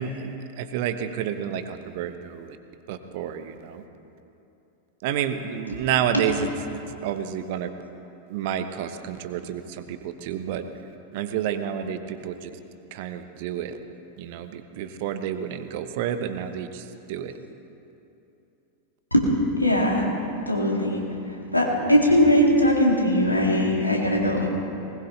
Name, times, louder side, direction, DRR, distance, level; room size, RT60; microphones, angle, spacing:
voice 1, 0.0-2.6 2.9-3.8 5.0-7.7 8.3-10.7 11.1-12.5 12.9-13.8 14.2-17.3, right 9 dB, 50° right, 9 dB, 1.0 m, -30 dB
voice 2, 19.6-20.1 20.5-24.5, equal, 85° left, -1 dB, 2.5 m, -20 dB
20.0 x 20.0 x 3.3 m, 2.8 s
figure-of-eight pair, 90°, 0 cm